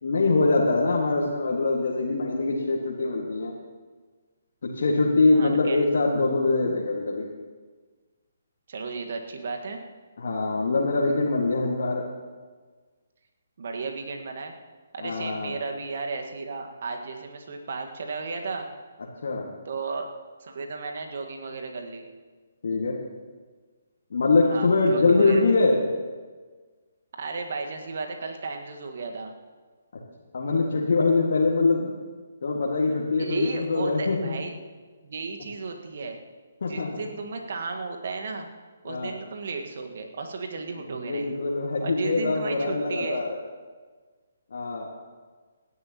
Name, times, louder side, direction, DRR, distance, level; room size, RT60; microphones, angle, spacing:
voice 1, 0.0-3.5 4.6-7.3 10.2-12.0 15.0-15.5 19.2-19.5 22.6-23.0 24.1-25.8 30.3-31.9 32.4-34.4 36.6-37.0 38.9-39.1 40.8-43.4 44.5-44.9, left 3 dB, 55° left, -4 dB, 1.9 m, -23 dB
voice 2, 5.3-5.8 8.7-9.8 13.6-14.5 14.9-18.7 19.6-20.1 20.4-22.0 24.5-25.4 27.2-29.3 33.2-34.5 35.0-36.2 36.7-38.5 38.8-41.3 41.8-43.2, right 4 dB, 50° right, 3 dB, 1.6 m, -34 dB
27.0 x 11.0 x 3.0 m, 1.4 s
figure-of-eight pair, 135°, 0 cm